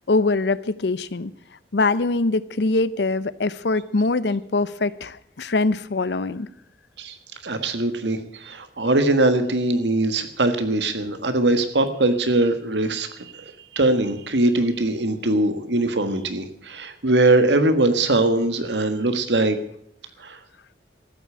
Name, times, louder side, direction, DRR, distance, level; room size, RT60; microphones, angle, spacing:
voice 1, 0.1-1.3 1.7-6.5, left 3 dB, 75° left, 17 dB, 0.7 m, -23 dB
voice 2, 7.4-19.6 20.2-20.4, right 2 dB, 85° right, 9 dB, 1.6 m, -21 dB
14.0 x 8.4 x 8.7 m, 0.69 s
head